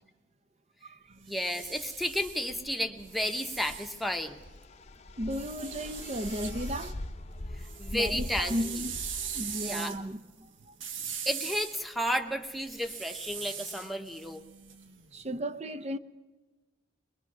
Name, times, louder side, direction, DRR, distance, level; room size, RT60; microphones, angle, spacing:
sound 1, 1.1-4.6 5.3-7.0 7.3-15.2, right 7 dB, 80° right, 1.3 m, -41 dB
voice 1, 1.3-4.4 7.8-8.6 9.6-10.0 11.3-14.4, equal, ahead, 1.0 m, -32 dB
sound 2, 1.8-10.1, left 1 dB, 35° left, 0.7 m, -43 dB
voice 2, 5.2-7.0 7.9-9.1 9.3-10.7 15.1-16.0, equal, 35° right, 0.7 m, -35 dB
21.5 x 21.0 x 6.1 m
head